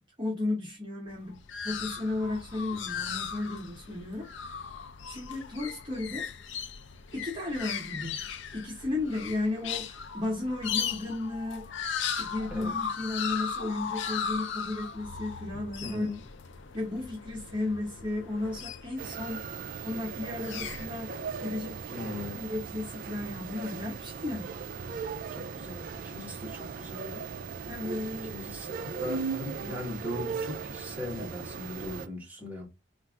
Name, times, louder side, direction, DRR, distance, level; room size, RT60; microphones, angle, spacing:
voice 1, 0.2-1.4 1.6-4.5 5.1-6.3 7.1-8.2 8.5-11.7 12.0-16.1 16.7-19.4 19.8-22.1 22.3-24.5 27.6-28.3, left 2 dB, 25° right, 1.1 m, -34 dB
sound 1, 1.1-19.3 20.2-20.9, left 7 dB, 70° left, 0.5 m, -37 dB
voice 2, 15.5-16.2 21.9-22.4 25.3-27.2 27.5-27.7 28.0-32.7, left 1 dB, 10° right, 1.4 m, -39 dB
sound 2, 19.0-32.1, right 5 dB, 45° right, 0.4 m, -38 dB
4.3 x 2.5 x 3.6 m
head